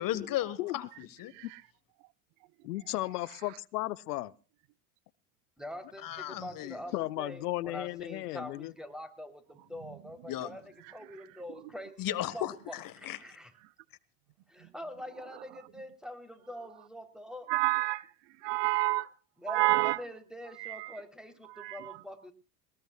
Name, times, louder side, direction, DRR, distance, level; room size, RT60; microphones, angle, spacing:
voice 1, 0.0-1.3 6.0-6.8 10.3-10.6 12.0-13.2, left 13 dB, 45° left, 1.4 m, -35 dB
voice 2, 2.6-4.3 6.9-8.7, left 17 dB, 80° left, 0.7 m, -35 dB
voice 3, 5.6-10.6 10.9-13.5 14.5-17.5 19.4-22.3, equal, ahead, 3.4 m, -44 dB
voice 4, 17.5-18.0 18.4-19.1 19.5-20.0 20.6-20.9 21.6-21.8, right 20 dB, 60° right, 0.8 m, -28 dB
21.0 x 20.0 x 2.3 m
hypercardioid pair, 80°, 46 cm